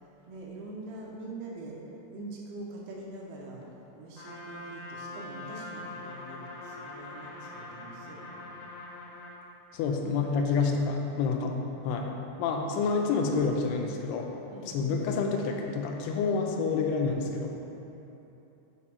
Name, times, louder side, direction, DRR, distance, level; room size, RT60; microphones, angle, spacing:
voice 1, 0.0-1.8 2.1-3.6 4.0-8.6 10.0-10.3 11.4-11.7 12.5-12.8 14.5-14.8, right 2 dB, 75° right, -2 dB, 2.5 m, -44 dB
Trumpet, 4.2-9.4, left 2 dB, 65° left, 2.2 m, -43 dB
voice 2, 9.7-11.5 11.8-12.1 12.4-14.3 14.7-17.5, left 4 dB, 90° left, 2 dB, 2.7 m, -28 dB
7.5 x 4.9 x 4.3 m, 3.0 s
omnidirectional pair, 4.6 m